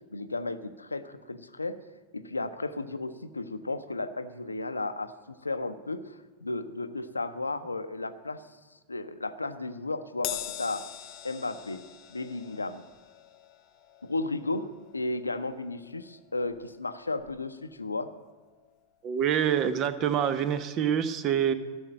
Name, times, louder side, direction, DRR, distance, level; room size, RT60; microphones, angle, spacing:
voice 1, 0.1-1.8 2.1-8.4 8.9-10.8 11.2-11.8 12.1-12.8 14.0-14.7 14.9-18.1, left 2 dB, 80° left, 11 dB, 0.7 m, -34 dB
Crash cymbal, 10.2-16.9 17.2-17.4 18.5-18.6, left 12 dB, 40° left, 0.8 m, -43 dB
voice 2, 19.0-21.5, right 9 dB, 35° right, 12 dB, 0.8 m, -26 dB
13.5 x 6.4 x 8.9 m, 1.4 s
figure-of-eight pair, 90°, 0 cm